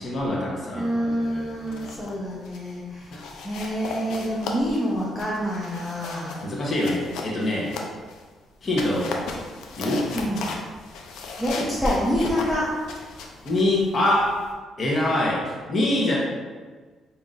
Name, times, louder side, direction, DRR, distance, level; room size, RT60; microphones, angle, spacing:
voice 1, 0.0-2.1 3.1-3.2 6.4-7.7 8.6-9.2 9.8-10.1 13.4-14.4 14.8-16.2, left 1 dB, 40° left, -4 dB, 1.1 m, -25 dB
voice 2, 0.7-3.2 3.4-6.4 10.1-10.5 11.4-12.7, equal, 10° left, -7 dB, 0.8 m, -27 dB
sound 1, 1.5-2.1 2.4-2.7 3.1-8.2 8.6-14.5, left 4 dB, 85° left, 0.5 m, -36 dB
5.4 x 2.9 x 2.5 m, 1.4 s
cardioid pair, 90°, 0 cm